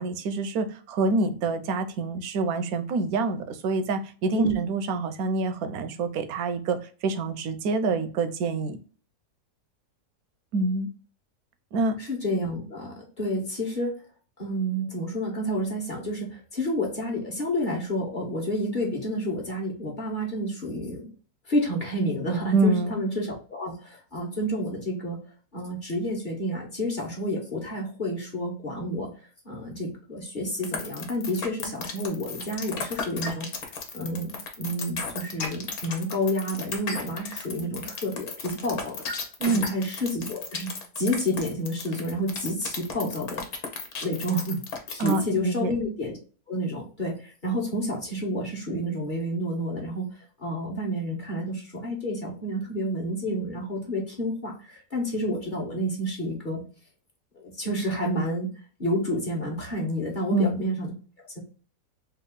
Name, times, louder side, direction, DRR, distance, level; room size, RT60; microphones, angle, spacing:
voice 1, 0.0-8.8 10.5-10.9 11.7-12.0 22.5-22.9 39.4-39.8 45.0-45.7 60.3-60.6, right 3 dB, 75° right, 9 dB, 1.1 m, -26 dB
voice 2, 12.0-13.9 14.4-21.1 21.5-25.2 25.5-33.5 33.9-40.7 41.0-43.4 44.0-46.2 46.5-56.6 57.3-58.5 58.8-60.9, equal, 35° left, -2 dB, 1.2 m, -30 dB
sound 1, 30.6-45.3, left 5 dB, 70° left, 1.4 m, -34 dB
3.6 x 2.7 x 3.7 m, 0.38 s
omnidirectional pair, 1.6 m